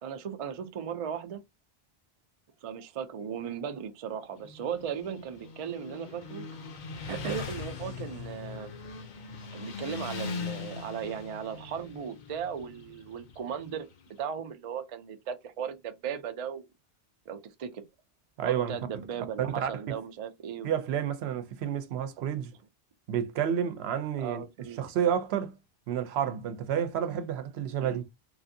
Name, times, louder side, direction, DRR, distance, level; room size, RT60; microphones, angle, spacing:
voice 1, 0.0-1.4 2.6-6.4 7.1-8.7 9.5-13.9 14.2-16.6 17.3-17.8 18.4-20.7 24.2-24.8 27.8-28.0, right 8 dB, 55° right, 0.4 m, -37 dB
Motorcycle, 4.3-14.1, left 5 dB, 55° left, 0.7 m, -41 dB
voice 2, 18.4-18.8 19.4-20.0 20.6-22.5 23.1-24.4 24.8-25.6 25.9-28.0, right 9 dB, 80° right, 0.8 m, -30 dB
3.1 x 2.5 x 2.6 m
omnidirectional pair, 1.1 m